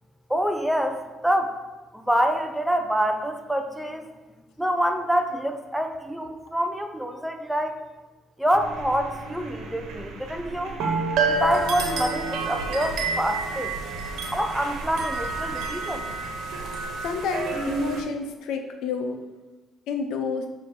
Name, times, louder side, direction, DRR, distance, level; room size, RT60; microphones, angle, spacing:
voice 1, 0.3-1.6 1.9-4.1 4.6-7.8 8.4-10.8 11.3-13.7 14.3-16.1, equal, 5° right, 6 dB, 0.6 m, -26 dB
sound 1, 8.5-18.0, right 3 dB, 85° right, 1.2 m, -29 dB
voice 2, 16.6-19.2 19.9-20.5, left 5 dB, 80° left, 6 dB, 0.8 m, -30 dB
7.1 x 3.7 x 6.1 m, 1.2 s
cardioid pair, 110°, 0 cm